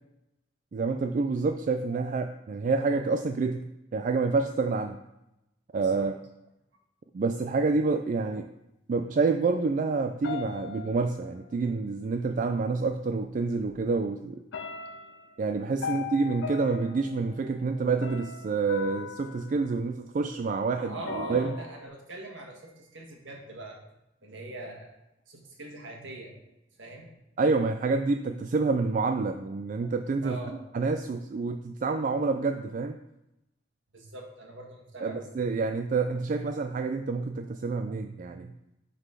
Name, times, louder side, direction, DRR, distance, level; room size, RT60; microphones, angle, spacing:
voice 1, 0.7-5.0 5.7-6.1 7.1-8.5 8.9-14.4 15.4-21.5 27.4-30.4 30.7-33.0 35.0-38.5, right 4 dB, 45° right, 7 dB, 0.3 m, -28 dB
sound 1, 10.2-11.7 12.9-13.0 13.4-14.0 14.5-20.4 21.1-21.9, left 6 dB, 75° left, 0.5 m, -40 dB
voice 2, 20.8-23.8 24.2-24.9 25.3-26.4 26.8-27.1 30.2-30.6 33.9-35.3, right 1 dB, 85° right, 1 dB, 1.6 m, -42 dB
8.0 x 4.1 x 5.6 m, 0.90 s
head